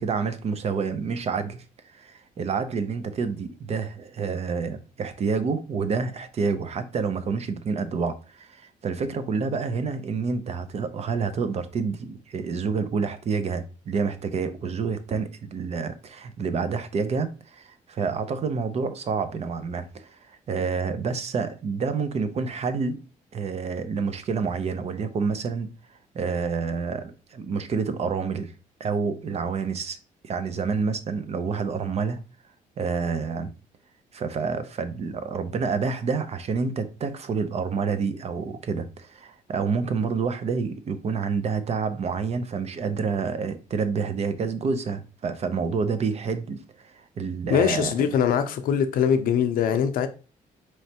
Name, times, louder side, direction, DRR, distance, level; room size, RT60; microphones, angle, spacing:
voice 1, 0.0-1.6 1.9-23.0 23.3-25.7 26.1-28.5 28.8-30.0 30.2-32.2 32.8-33.5 34.1-48.1, right 5 dB, 50° right, 0.5 m, -28 dB
voice 2, 47.5-50.1, left 8 dB, 80° left, 0.5 m, -22 dB
4.3 x 3.1 x 2.8 m
cardioid pair, 105°, 14 cm